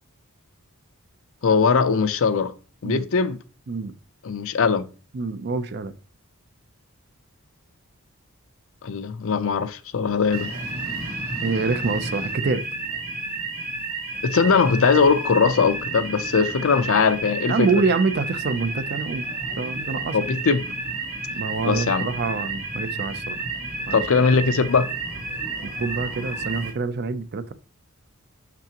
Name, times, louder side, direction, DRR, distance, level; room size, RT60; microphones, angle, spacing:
voice 1, 1.4-2.5 2.8-3.4 4.2-4.9 8.8-10.5 14.2-17.8 20.1-20.7 21.6-22.1 23.9-24.9, left 5 dB, 65° left, 0.5 m, -20 dB
voice 2, 5.1-5.9 11.4-12.6 16.4-16.5 17.5-19.3 19.6-20.2 21.4-23.4 23.9-24.0 25.6-27.5, right 4 dB, 50° right, 0.5 m, -26 dB
sound 1, 10.3-26.7, right 3 dB, 80° right, 2.6 m, -31 dB
6.0 x 5.7 x 2.9 m
head